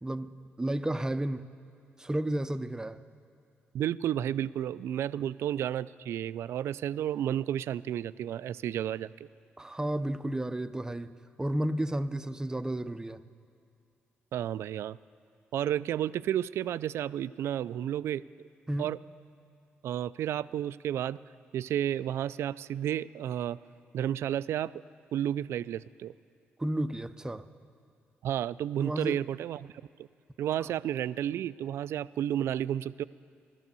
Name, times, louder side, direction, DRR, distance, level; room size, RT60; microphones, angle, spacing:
voice 1, 0.0-1.5 2.0-3.0 5.1-5.2 9.6-11.1 11.4-13.2 18.7-18.9 26.6-27.5 28.8-29.2 30.6-30.7, right 1 dB, 15° right, 0.6 m, -32 dB
voice 2, 3.7-9.1 14.3-15.0 15.5-18.2 18.8-19.0 19.8-21.2 21.5-23.6 23.9-24.7 25.1-26.1 28.2-29.7 30.0-30.1 30.4-33.0, right 11 dB, 75° right, 0.3 m, -32 dB
16.0 x 12.5 x 6.9 m
cardioid pair, 70°, 4 cm